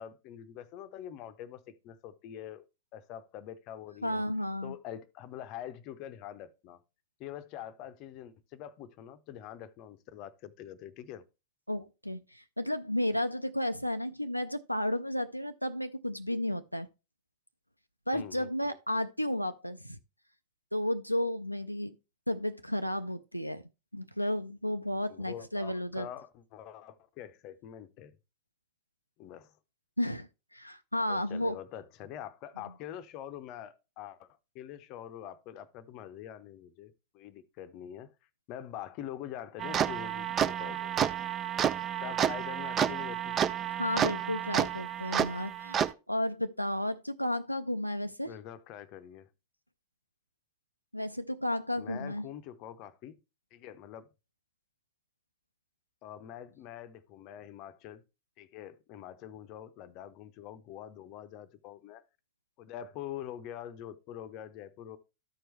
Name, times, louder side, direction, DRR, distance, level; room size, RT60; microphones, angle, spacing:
voice 1, 0.0-2.6 2.9-4.2 4.6-6.8 7.2-11.2 18.1-18.8 25.1-28.1 29.2-29.5 31.1-34.3 34.5-38.1 38.5-41.1 42.0-43.4 48.3-49.3 51.8-53.2 53.5-54.1 56.0-58.0 58.4-62.0 62.6-65.0, left 10 dB, 40° left, 0.6 m, -45 dB
voice 2, 4.0-4.7 11.7-16.9 18.1-20.0 20.7-22.0 22.3-23.6 23.9-26.1 30.0-31.6 43.8-48.3 50.9-52.3, left 1 dB, 90° left, 0.3 m, -33 dB
sound 1, 39.6-45.9, right 9 dB, 25° right, 0.4 m, -30 dB
13.0 x 4.6 x 3.1 m
figure-of-eight pair, 90°, 0 cm